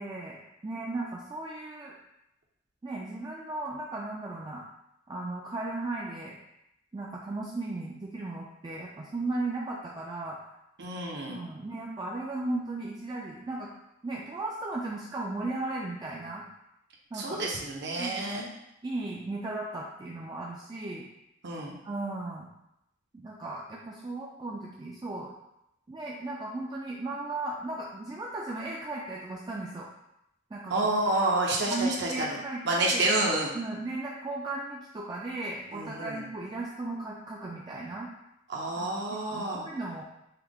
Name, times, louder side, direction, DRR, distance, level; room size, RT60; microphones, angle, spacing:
voice 1, 0.0-1.9 2.8-4.6 5.1-6.4 6.9-10.4 11.3-13.7 14.0-16.4 17.1-17.4 18.0-18.3 18.8-21.1 21.8-22.5 23.1-25.3 25.9-29.9 30.5-30.7 31.7-33.1 33.5-38.1 38.8-40.0, right 2 dB, 20° right, -3 dB, 0.4 m, -36 dB
voice 2, 10.8-11.4 17.1-18.4 21.4-21.8 30.7-33.5 35.7-36.3 38.5-39.6, right 2 dB, 60° right, -1 dB, 0.8 m, -29 dB
5.7 x 2.0 x 3.5 m, 0.84 s
head